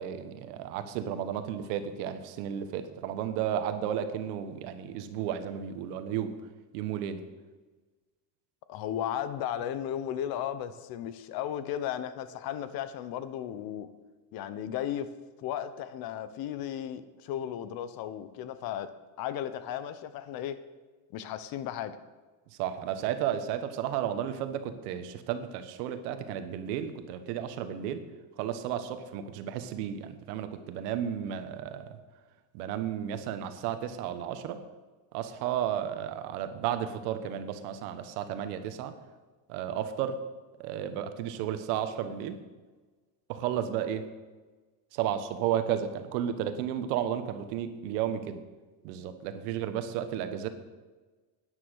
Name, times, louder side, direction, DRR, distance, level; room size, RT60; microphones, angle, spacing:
voice 1, 0.0-6.3 6.7-7.2 22.6-28.0 28.4-31.9 32.5-34.6 35.1-38.9 39.5-40.2 40.6-42.4 43.3-44.1 44.9-48.4 48.8-50.5, right 10 dB, 90° right, 9 dB, 1.4 m, -33 dB
voice 2, 8.7-13.9 14.3-15.1 15.4-18.9 19.2-20.6 21.1-22.0, left 10 dB, 50° left, 13 dB, 0.9 m, -35 dB
11.5 x 9.8 x 6.4 m, 1.3 s
cardioid pair, 155°, 46 cm